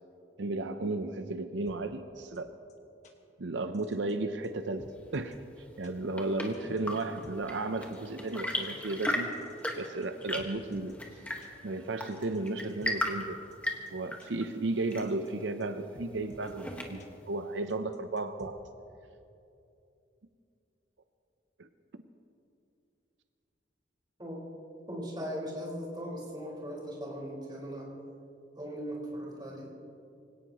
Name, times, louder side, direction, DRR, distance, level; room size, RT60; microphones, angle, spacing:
voice 1, 0.4-2.5 3.4-5.4 5.8-9.3 9.8-11.0 11.6-13.4 13.9-18.6 21.6-21.7, right 2 dB, 85° right, 9 dB, 0.7 m, -34 dB
sound 1, 1.6-1.8 2.3-2.4 2.7-2.8 3.0-3.1 3.7-4.1 4.4-4.5 4.8-5.4 5.8-5.9 6.5-7.3 7.9-8.0 8.3-8.4 8.6-8.7 9.3-10.1 10.4-10.9 11.4-11.5 12.1-12.9 13.5-13.6 13.9-14.0 14.2-14.3 14.9-15.3 15.6-15.7 15.9-16.5 17.0-17.1 17.7-18.5, left 1 dB, 40° left, 1.6 m, -53 dB
Chirp tweet / Engine / Tap, 5.7-17.2, equal, 10° left, 1.5 m, -38 dB
voice 2, 24.9-27.9 28.6-29.7, equal, 25° right, -5 dB, 4.6 m, -39 dB
24.5 x 17.5 x 3.0 m, 2.6 s
head